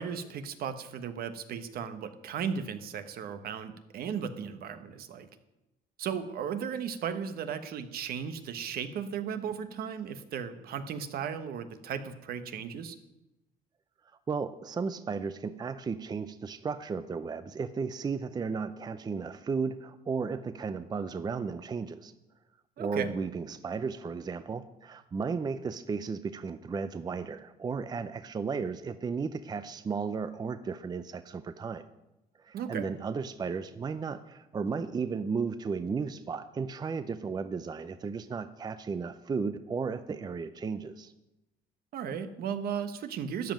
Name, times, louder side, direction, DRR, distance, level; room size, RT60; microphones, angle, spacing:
voice 1, 0.0-5.3 6.0-13.0 22.8-23.1 32.5-32.9 41.9-43.5, right 7 dB, 65° right, 10 dB, 1.1 m, -36 dB
voice 2, 14.3-22.1 22.8-31.8 32.4-41.1, right 5 dB, 25° right, 12 dB, 0.5 m, -34 dB
13.5 x 5.3 x 8.9 m, 0.95 s
cardioid pair, 110°, 17 cm